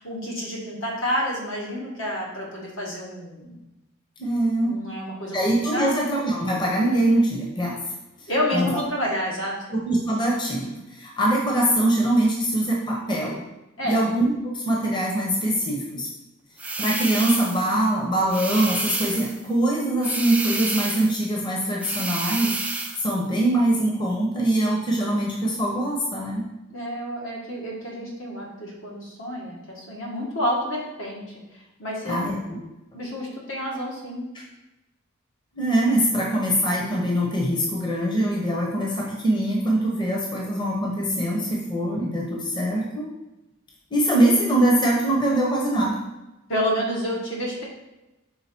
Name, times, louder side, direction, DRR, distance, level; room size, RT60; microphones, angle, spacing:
voice 1, 0.0-3.6 4.6-6.0 8.3-9.6 13.8-14.0 26.7-31.3 31.8-32.2 32.9-34.2 46.5-47.6, equal, 70° left, -3 dB, 1.6 m, -29 dB
voice 2, 4.2-4.7 5.3-7.8 8.5-8.8 9.7-13.4 13.8-16.1 16.8-22.5 23.0-26.5 32.0-32.4 35.5-43.1 43.9-46.0, right 1 dB, 20° left, -3 dB, 0.9 m, -23 dB
sound 1, 16.6-17.7 18.3-19.4 20.0-21.2 21.8-23.1, right 3 dB, 5° right, 0.3 m, -30 dB
5.5 x 3.9 x 4.4 m, 0.98 s
head